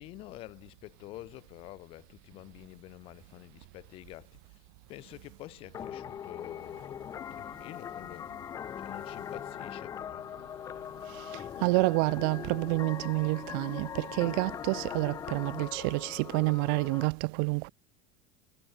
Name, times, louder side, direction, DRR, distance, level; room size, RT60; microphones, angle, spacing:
voice 1, 0.0-4.6 4.9-7.0 7.3-8.3 8.8-10.3, left 18 dB, 45° left, 5.9 m, -48 dB
sound 1, 5.7-17.1, left 9 dB, 25° left, 1.5 m, -41 dB
voice 2, 11.6-17.7, right 35 dB, 65° right, 0.4 m, -28 dB
supercardioid pair, 150°, 12 cm